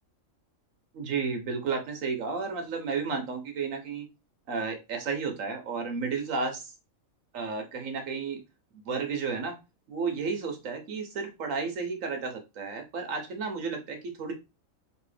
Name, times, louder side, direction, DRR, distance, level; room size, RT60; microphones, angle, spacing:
voice 1, 0.9-4.1 4.5-6.7 7.3-8.4 8.7-9.6 9.9-14.3, right 5 dB, 75° right, 5 dB, 1.3 m, -32 dB
3.2 x 2.7 x 3.3 m, 0.25 s
omnidirectional pair, 1.4 m